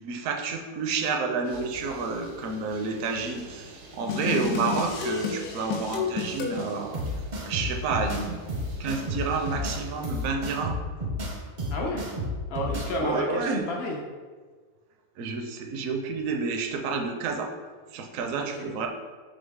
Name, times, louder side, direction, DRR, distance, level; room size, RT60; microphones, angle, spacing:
voice 1, 0.0-7.0 7.5-8.4 8.8-10.8 13.0-13.7 15.2-17.5 17.9-18.9, right 4 dB, 70° right, 4 dB, 0.9 m, -30 dB
sound 1, 1.4-10.4, right 2 dB, 90° right, 1.3 m, -47 dB
sound 2, 4.1-6.7, left 5 dB, 85° left, 1.1 m, -30 dB
sound 3, 6.9-12.9, left 1 dB, 50° right, 0.6 m, -31 dB
voice 2, 11.7-12.0 12.5-14.0 18.3-18.7, left 1 dB, 65° left, -1 dB, 0.6 m, -31 dB
3.9 x 3.3 x 3.4 m, 1.5 s
omnidirectional pair, 1.6 m